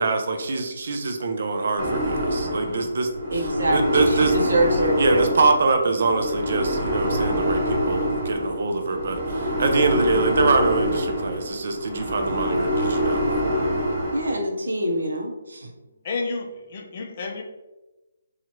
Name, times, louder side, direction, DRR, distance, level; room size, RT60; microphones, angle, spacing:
voice 1, 0.0-4.3 5.0-13.2, right 3 dB, 55° right, 6 dB, 0.4 m, -24 dB
sound 1, 1.8-14.3, equal, 20° right, 0.8 m, -25 dB
voice 2, 3.3-5.2 10.0-10.5 14.1-15.7, right 1 dB, 90° right, 1 dB, 0.7 m, -25 dB
voice 3, 16.0-17.4, left 3 dB, 35° left, 2 dB, 0.4 m, -30 dB
3.0 x 2.4 x 2.8 m, 1.1 s
hypercardioid pair, 165°, 0 cm